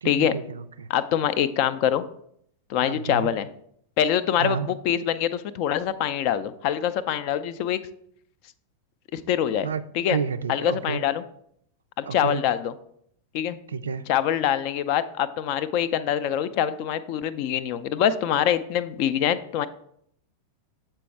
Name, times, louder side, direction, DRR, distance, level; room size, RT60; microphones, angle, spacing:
voice 1, 0.0-0.9 2.8-3.3 4.4-4.7 9.6-9.8 10.1-11.0 12.1-12.4 13.7-14.0, right 6 dB, 70° right, 12 dB, 0.3 m, -30 dB
voice 2, 0.9-2.0 2.7-3.5 4.0-7.8 9.1-9.7 9.9-10.2 10.5-11.2 12.0-12.7 13.3-13.6 14.1-19.7, left 10 dB, 45° left, 14 dB, 0.4 m, -24 dB
7.5 x 4.4 x 3.3 m, 0.70 s
figure-of-eight pair, 90°, 0 cm